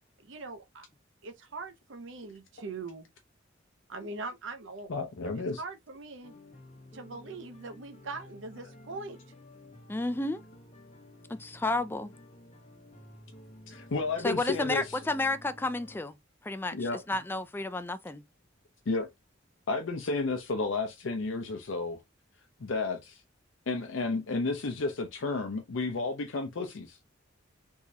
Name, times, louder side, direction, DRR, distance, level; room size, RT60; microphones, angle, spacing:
voice 1, 0.2-0.9 1.2-3.1 3.9-6.3 6.9-9.2, right 3 dB, 70° right, 0.6 m, -42 dB
voice 2, 4.9-5.6 13.7-14.8 16.7-17.0 18.9-19.1 19.7-22.0 22.6-23.2 23.7-27.0, left 3 dB, 75° left, 0.6 m, -32 dB
sound 1, 6.2-16.0, left 1 dB, 35° left, 0.9 m, -52 dB
voice 3, 9.9-10.4 11.3-12.1 14.2-16.2 16.4-18.2, left 2 dB, 10° left, 0.3 m, -31 dB
3.6 x 3.0 x 2.7 m
head